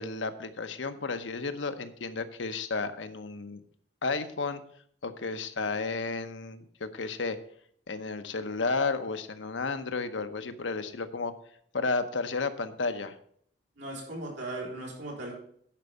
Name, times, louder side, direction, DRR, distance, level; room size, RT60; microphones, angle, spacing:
voice 1, 0.0-3.6 4.0-4.6 5.0-7.4 7.9-11.3 11.7-13.1, left 4 dB, 90° left, 9 dB, 0.9 m, -32 dB
voice 2, 13.8-15.4, right 2 dB, 85° right, -3 dB, 4.4 m, -38 dB
10.5 x 5.3 x 7.0 m, 0.65 s
head